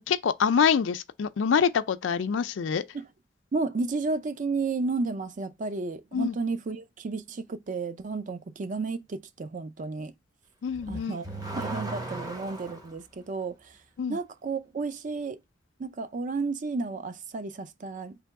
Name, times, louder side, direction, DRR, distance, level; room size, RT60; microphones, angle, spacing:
voice 1, 0.0-2.9 6.1-6.3 10.6-11.1 14.0-14.2, left 6 dB, 90° left, 0.4 m, -25 dB
voice 2, 3.5-10.1 10.9-11.2 11.6-13.8 14.1-15.4 15.8-18.2, right 3 dB, 45° right, 0.4 m, -32 dB
Car / Accelerating revving vroom, 10.7-12.9, right 2 dB, 20° right, 0.8 m, -36 dB
3.4 x 2.9 x 4.6 m
head